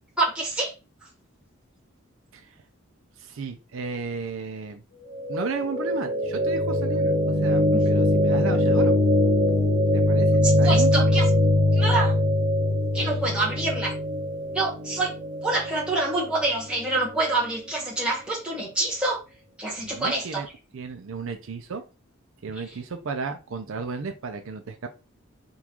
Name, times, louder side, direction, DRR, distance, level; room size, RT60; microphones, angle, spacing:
voice 1, 0.2-0.7 7.7-7.8 10.4-11.2 11.7-12.1 12.9-13.9 14.5-15.1 15.4-19.2 19.6-20.4, right 2 dB, 5° right, -5 dB, 1.2 m, -26 dB
voice 2, 3.2-4.8 5.3-9.0 9.9-11.2 19.8-20.5 20.7-21.8 22.4-24.9, right 4 dB, 70° right, 6 dB, 0.5 m, -34 dB
sound 1, 5.1-17.2, left 1 dB, 90° right, 1.4 m, -22 dB
3.8 x 2.4 x 2.9 m, 0.30 s
head